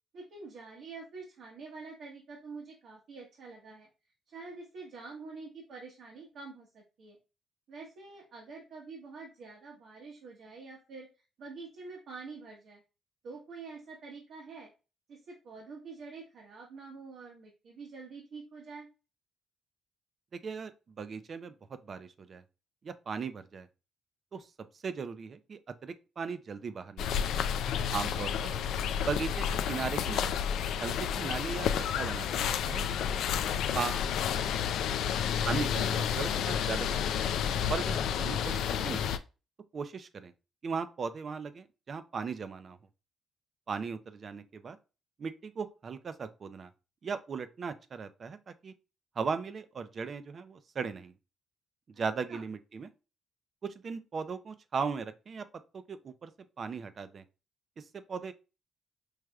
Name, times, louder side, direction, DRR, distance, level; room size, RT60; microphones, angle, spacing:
voice 1, 0.1-3.9 4.3-7.2 7.7-11.1 11.4-12.8 13.2-14.7 15.1-18.9 28.5-28.6 38.8-39.1 52.3-52.4, right 4 dB, 70° right, 1.2 m, -47 dB
voice 2, 20.4-22.4 22.8-23.7 24.3-27.3 27.9-28.5 29.0-30.4 30.8-33.2 33.7-34.1 35.5-37.3 37.7-39.2 39.7-40.3 40.6-42.8 43.7-44.8 45.2-46.7 47.0-48.7 49.2-51.1 52.0-52.9 53.6-55.5 55.7-56.3 56.6-57.2 57.8-58.3, right 5 dB, 45° right, 0.5 m, -38 dB
sound 1, 27.0-39.2, left 8 dB, 80° left, 0.3 m, -30 dB
4.8 x 3.2 x 2.3 m
cardioid pair, 90°, 0 cm